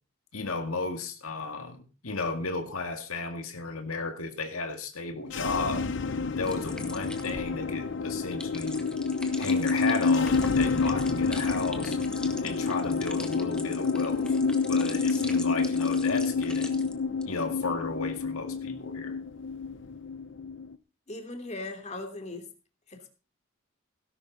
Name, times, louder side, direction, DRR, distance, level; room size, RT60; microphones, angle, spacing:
voice 1, 0.3-5.9 6.4-8.8 9.4-12.0 12.4-14.3 14.7-16.8 17.3-19.2, left 3 dB, 75° left, 2.0 m, -34 dB
sound 1, 5.2-20.7, left 4 dB, 55° left, 0.7 m, -28 dB
sound 2, 6.4-16.9 17.2-17.6, left 1 dB, 5° left, 1.8 m, -43 dB
voice 2, 6.5-6.9 21.1-22.5 22.9-23.1, left 2 dB, 30° left, 2.8 m, -39 dB
18.0 x 11.0 x 3.9 m
head